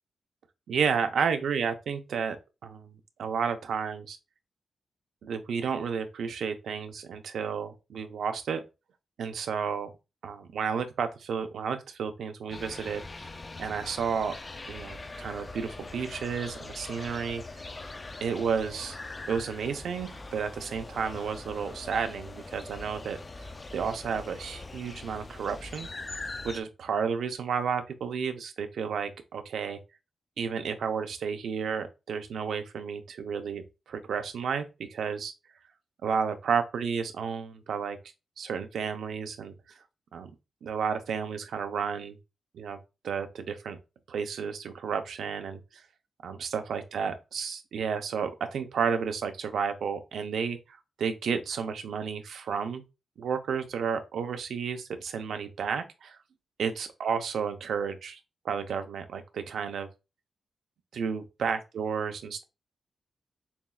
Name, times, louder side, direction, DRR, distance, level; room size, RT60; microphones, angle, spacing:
voice 1, 0.7-4.2 5.2-8.6 9.2-9.9 10.2-13.3 13.6-14.4 14.7-17.4 18.2-19.0 19.3-25.9 26.4-29.8 30.4-35.3 36.0-38.0 38.4-39.5 40.1-40.3 40.6-42.2 42.5-42.8 43.0-43.8 44.1-45.8 46.2-52.8 53.2-56.2 56.6-58.2 58.4-59.9 60.9-62.4, right 6 dB, 85° right, 0.6 m, -32 dB
sound 1, 12.5-26.6, left 3 dB, 25° left, 0.3 m, -42 dB
7.0 x 2.4 x 2.3 m
wide cardioid pair, 155°, 0 cm